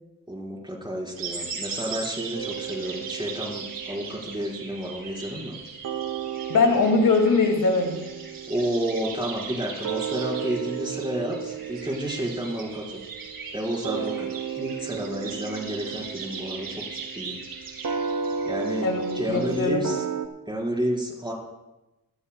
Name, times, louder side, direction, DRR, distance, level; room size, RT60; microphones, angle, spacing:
voice 1, 0.3-5.6 8.5-13.0 13.5-14.3 14.5-17.4 18.4-18.9 19.1-20.0 20.5-21.3, right 1 dB, 15° right, -1 dB, 4.5 m, -31 dB
sound 1, 1.2-19.6, right 5 dB, 85° right, 2.6 m, -39 dB
sound 2, 2.3-5.6 5.8-20.3, right 7 dB, 60° right, 0.9 m, -34 dB
voice 2, 6.5-8.0 18.8-19.0 19.3-19.8, left 4 dB, 70° left, 3 dB, 2.4 m, -21 dB
23.0 x 12.5 x 2.3 m, 0.99 s
cardioid pair, 60°, 34 cm